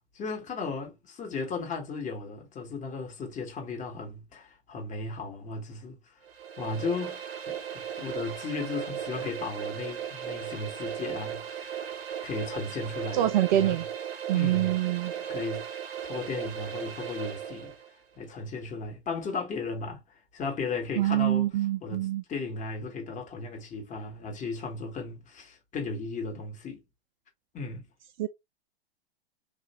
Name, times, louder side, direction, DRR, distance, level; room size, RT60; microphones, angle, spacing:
voice 1, 0.1-6.1 6.6-11.9 12.2-13.8 14.3-14.8 15.3-15.6 16.0-17.7 18.2-21.5 21.8-26.8 27.5-27.8, left 4 dB, 25° left, 1.2 m, -36 dB
sound 1, 6.2-17.9, right 9 dB, 65° right, 0.8 m, -37 dB
voice 2, 13.1-13.8 14.3-15.1 21.0-22.2 28.2-28.3, right 13 dB, 45° right, 0.5 m, -25 dB
3.2 x 2.4 x 3.0 m
figure-of-eight pair, 100°, 32 cm